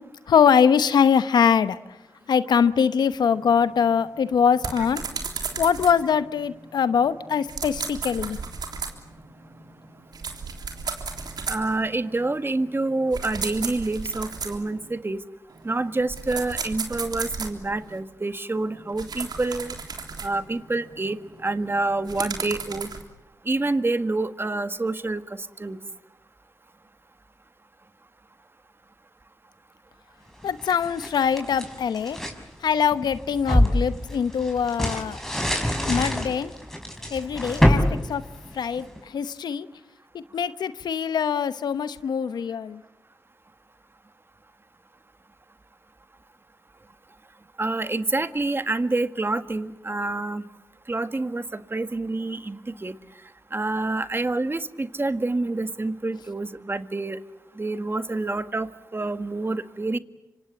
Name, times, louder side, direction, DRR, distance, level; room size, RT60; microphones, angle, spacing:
voice 1, 0.3-1.8 2.3-5.0 5.6-8.4 30.4-32.2 32.6-35.2 35.9-36.5 37.1-37.8 38.1-38.2 38.5-39.7 40.3-42.8, left 7 dB, 85° left, 13 dB, 1.0 m, -22 dB
sound 1, 3.2-15.0 15.5-18.0 18.5-23.0, right 5 dB, 75° right, 3.4 m, -36 dB
voice 2, 11.5-15.2 15.6-19.7 20.2-21.2 21.4-22.9 23.5-25.2 25.6-25.8 47.6-50.4 50.9-53.0 53.5-57.2 57.6-60.0, right 2 dB, 30° right, 11 dB, 1.7 m, -27 dB
sound 2, 30.4-32.4 32.9-39.0, left 1 dB, 5° left, 5.8 m, -25 dB
26.0 x 26.0 x 8.4 m, 0.94 s
cardioid pair, 50°, 7 cm